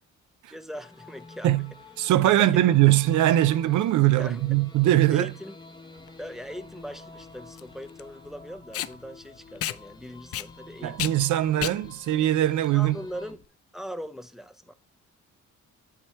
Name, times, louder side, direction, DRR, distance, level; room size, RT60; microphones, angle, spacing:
voice 1, 0.5-1.5 2.2-2.5 4.2-4.4 5.1-5.6 6.2-11.2 11.6-11.7 12.7-13.4 13.7-14.7, equal, ahead, 0.7 m, -40 dB
sound 1, 0.7-13.3, left 3 dB, 15° left, 1.1 m, -49 dB
voice 2, 2.0-5.3 10.8-13.0, right 14 dB, 75° right, 0.5 m, -21 dB
Packing tape duct tape, 6.0-13.4, left 12 dB, 50° left, 0.5 m, -36 dB
7.6 x 4.4 x 4.4 m
cardioid pair, 90°, 30 cm